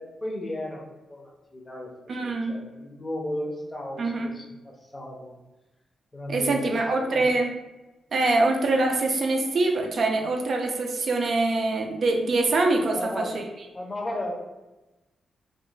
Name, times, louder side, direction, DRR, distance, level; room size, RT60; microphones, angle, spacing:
voice 1, 0.0-5.4 6.1-7.3 8.6-8.7 12.8-13.4 13.7-14.3, left 1 dB, 25° left, 0 dB, 0.6 m, -35 dB
voice 2, 2.1-2.6 4.0-4.3 6.3-7.5 8.1-13.4, right 2 dB, 60° right, 2 dB, 0.4 m, -24 dB
2.4 x 2.2 x 3.1 m, 1.1 s
cardioid pair, 90°, 0 cm